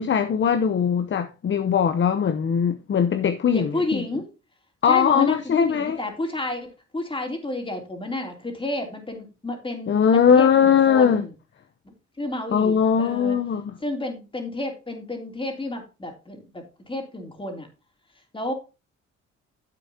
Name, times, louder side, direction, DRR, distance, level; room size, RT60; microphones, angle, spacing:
voice 1, 0.0-4.0 4.8-6.0 9.9-11.2 12.5-13.7, left 7 dB, 40° left, 0.8 m, -20 dB
voice 2, 3.5-4.2 4.9-11.3 11.8-13.4 13.8-17.7 18.3-18.5, left 2 dB, 15° left, 3.2 m, -31 dB
10.0 x 7.9 x 2.8 m
cardioid pair, 90°, 30 cm